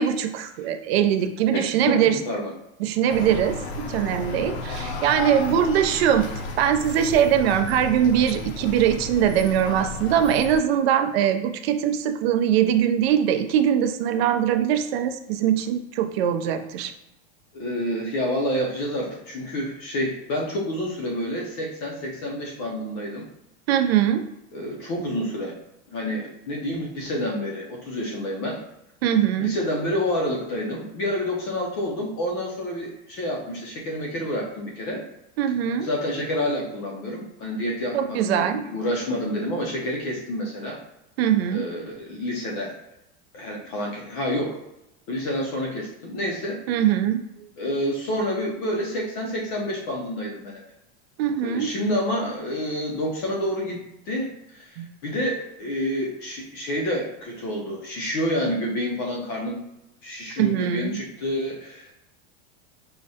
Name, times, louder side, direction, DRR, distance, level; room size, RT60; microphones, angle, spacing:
voice 1, 0.0-2.2 2.8-6.3 6.6-16.9 23.7-24.2 29.0-29.6 35.4-35.9 37.9-38.6 41.2-41.6 46.7-47.2 51.2-51.7 54.8-54.9 60.4-61.0, right 9 dB, 65° right, 7 dB, 0.5 m, -22 dB
voice 2, 1.9-2.5 17.5-23.3 24.5-25.5 25.9-28.6 29.4-35.0 35.8-40.8 41.5-42.7 43.3-44.6 45.1-46.6 47.6-50.6 51.4-59.6 60.0-61.9, equal, 30° left, -1 dB, 0.4 m, -28 dB
sound 1, 3.1-10.6, left 3 dB, 70° left, 0.6 m, -33 dB
4.7 x 2.1 x 2.7 m, 0.86 s
supercardioid pair, 170°, 33 cm